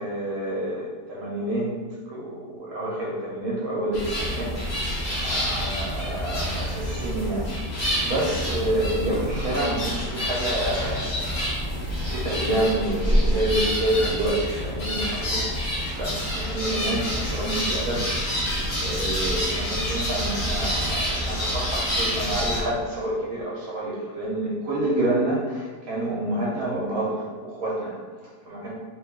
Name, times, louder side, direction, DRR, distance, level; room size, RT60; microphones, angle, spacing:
voice 1, 0.0-1.7 2.1-4.5 4.8-11.7 12.1-15.5 15.9-18.5 18.8-28.7, right 1 dB, 70° right, -5 dB, 1.1 m, -28 dB
sound 1, 3.9-22.6, equal, 40° left, 0.7 m, -27 dB
2.8 x 2.3 x 3.5 m, 1.4 s
omnidirectional pair, 1.6 m